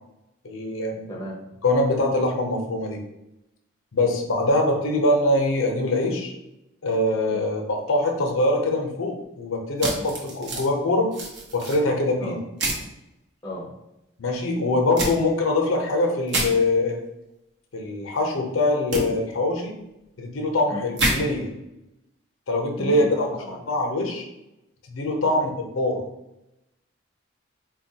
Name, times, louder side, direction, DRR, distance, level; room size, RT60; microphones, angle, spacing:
voice 1, 0.4-1.0 1.6-3.0 3.9-6.3 6.8-11.1 11.5-12.4 14.2-17.0 17.7-19.7 20.2-21.5 22.5-23.3 23.7-24.3 24.9-25.5 25.8-26.0, left 2 dB, 85° left, 2 dB, 0.6 m, -23 dB
voice 2, 1.1-1.4 7.3-7.4 12.2-12.4 13.4-13.7 15.0-15.1 20.7-20.9 22.8-23.6 25.2-25.4, equal, 15° left, -2 dB, 0.6 m, -33 dB
sound 1, 9.8-10.6 11.1-11.8 12.6-12.8 15.0-15.1 16.3-16.5 18.9-19.0 21.0-21.1, right 2 dB, 60° right, 0.7 m, -26 dB
4.0 x 2.2 x 2.7 m, 0.89 s
head